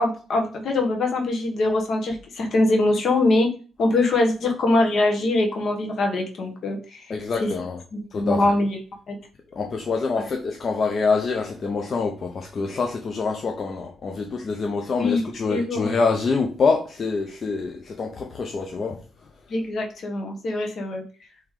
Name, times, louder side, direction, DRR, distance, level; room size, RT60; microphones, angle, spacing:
voice 1, 0.0-3.5 3.8-7.1 7.4-7.5 7.9-8.8 9.1-9.2 10.1-10.3 15.0-15.9 19.5-21.0, left 2 dB, 55° left, 1.1 m, -23 dB
voice 2, 7.1-7.8 8.1-8.4 9.5-19.0, left 4 dB, 40° left, 0.6 m, -25 dB
4.9 x 3.0 x 3.6 m
cardioid pair, 130°, 0 cm